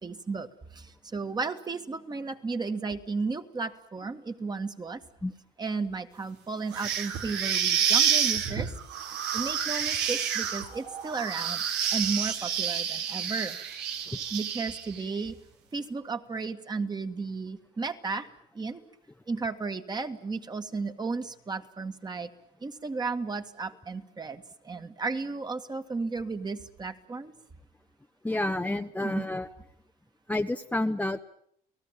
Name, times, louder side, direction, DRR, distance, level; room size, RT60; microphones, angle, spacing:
voice 1, 0.0-5.0 5.6-8.7 9.3-11.6 11.9-13.6 14.3-15.4 15.7-18.8 19.3-22.3 22.6-27.3 29.0-29.3, right 4 dB, 25° right, 7 dB, 2.0 m, -34 dB
sound 1, 6.7-15.0, right 8 dB, 85° right, 3.0 m, -29 dB
voice 2, 28.2-29.5 30.3-31.2, left 2 dB, 10° left, 6 dB, 1.0 m, -29 dB
30.0 x 18.5 x 9.0 m, 0.70 s
cardioid pair, 110°, 17 cm